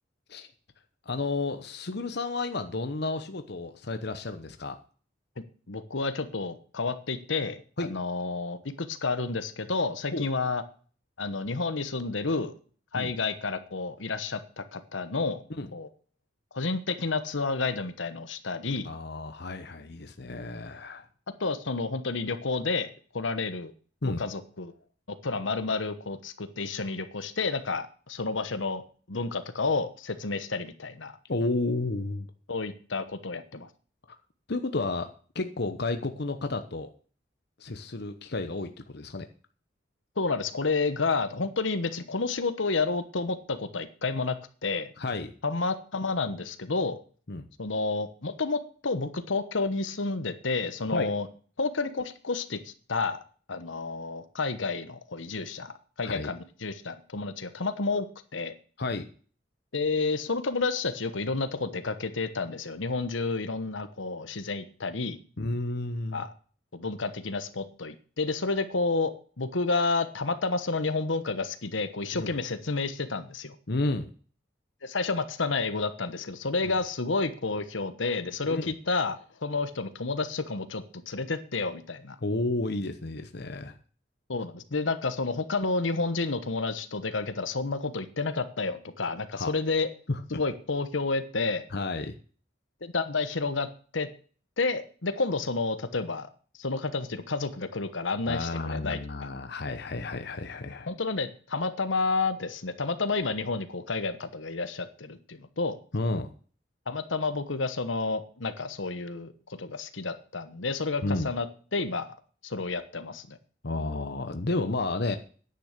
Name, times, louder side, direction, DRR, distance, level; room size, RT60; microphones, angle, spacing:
voice 1, 1.1-4.8 7.8-7.9 10.1-10.2 12.9-13.1 15.6-15.7 18.8-21.1 24.0-24.2 31.3-32.3 34.5-36.9 37.6-39.3 45.0-45.3 47.3-47.4 50.8-51.1 56.0-56.3 58.8-59.1 65.4-66.2 72.1-72.3 73.7-74.1 76.6-76.7 78.5-78.7 82.2-83.8 89.4-89.5 90.1-90.2 91.7-92.1 98.3-100.9 105.9-106.3 111.0-111.3 113.6-115.2, left 2 dB, 60° left, 8 dB, 1.0 m, -31 dB
voice 2, 5.7-10.6 11.2-12.5 12.9-15.4 15.7-15.9 16.5-18.9 21.4-23.7 24.2-24.7 25.1-28.8 29.1-31.1 32.5-33.7 40.2-44.4 44.6-44.9 45.4-47.0 47.6-51.3 51.6-53.2 53.5-55.7 56.0-58.1 58.3-58.5 59.7-65.2 66.1-66.3 66.7-73.5 74.8-82.2 84.3-89.9 90.3-91.6 92.8-93.7 93.9-94.1 94.6-96.3 96.6-99.3 100.9-105.8 106.9-111.5 111.7-112.1 112.4-113.4, left 3 dB, 80° left, 11 dB, 1.2 m, -30 dB
10.5 x 9.3 x 6.7 m, 0.42 s
head